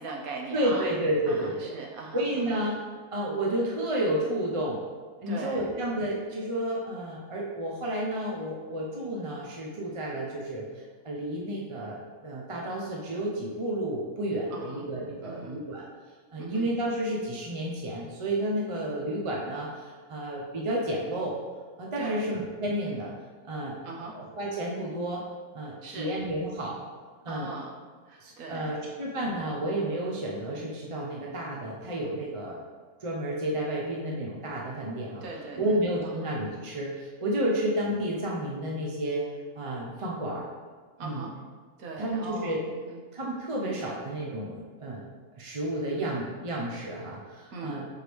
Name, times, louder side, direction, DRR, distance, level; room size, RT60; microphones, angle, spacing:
voice 1, 0.0-0.9 1.3-2.2 5.3-5.7 14.5-14.8 15.2-15.6 16.4-16.7 22.0-22.2 23.8-24.2 25.8-26.2 27.3-27.8 28.1-28.9 35.2-35.8 36.0-36.3 41.0-41.4 41.8-43.0 47.5-47.9, right 3 dB, 80° right, 0 dB, 1.3 m, -39 dB
voice 2, 0.5-1.7 2.1-2.8 3.1-4.8 5.2-15.9 16.3-21.3 21.8-23.1 23.4-23.8 24.0-25.2 25.5-26.8 27.2-27.5 28.2-32.6 33.0-35.2 35.6-39.2 39.6-40.5 41.0-41.2 42.0-42.6 43.1-45.0 45.4-47.8, right 1 dB, 35° right, -3 dB, 0.6 m, -31 dB
6.4 x 4.7 x 3.4 m, 1.5 s
omnidirectional pair, 1.5 m